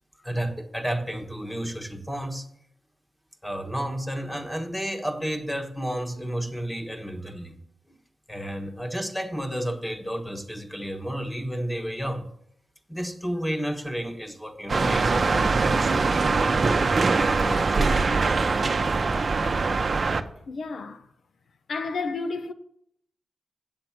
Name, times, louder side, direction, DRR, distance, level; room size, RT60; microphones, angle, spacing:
voice 1, 0.2-2.5 3.4-7.6 8.3-12.3 12.9-16.6 17.1-18.5, equal, 5° left, 1.3 m, -32 dB
sound 1, 14.7-20.2, right 4 dB, 50° right, 0.7 m, -22 dB
voice 2, 20.5-21.1 21.7-22.5, left 4 dB, 70° left, 0.6 m, -31 dB
8.8 x 7.6 x 5.9 m
wide cardioid pair, 95°, 0 cm